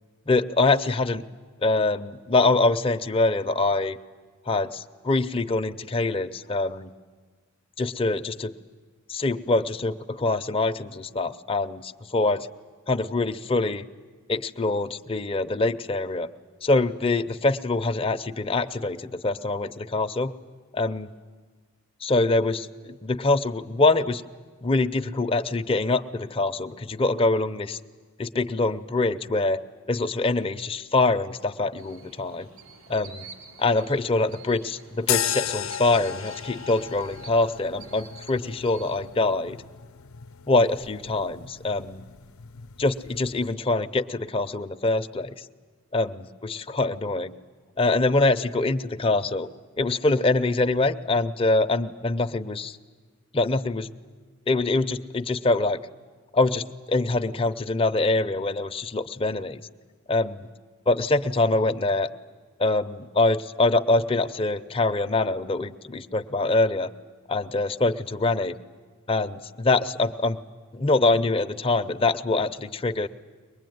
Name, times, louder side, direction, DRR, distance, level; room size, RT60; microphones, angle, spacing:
voice 1, 0.3-1.2 1.6-4.0 4.5-6.9 7.8-8.5 9.1-12.5 12.9-13.9 14.3-16.3 16.6-20.3 20.7-21.1 22.0-24.2 24.6-27.8 28.2-29.6 29.9-32.5 32.9-33.3 33.6-39.6 40.5-42.0 42.8-45.3 45.9-47.3 47.8-49.5 49.8-52.8 53.3-53.9 54.5-55.8 56.3-59.6 60.1-60.5 60.9-62.1 62.6-66.9 67.3-68.5 69.1-70.4 70.7-73.1, left 2 dB, 25° left, 7 dB, 0.6 m, -24 dB
sound 1, 31.8-39.0, right 4 dB, 75° right, 3.8 m, -48 dB
sound 2, 35.0-43.5, left 10 dB, 80° left, 0.6 m, -35 dB
23.0 x 20.5 x 9.4 m, 1.5 s
head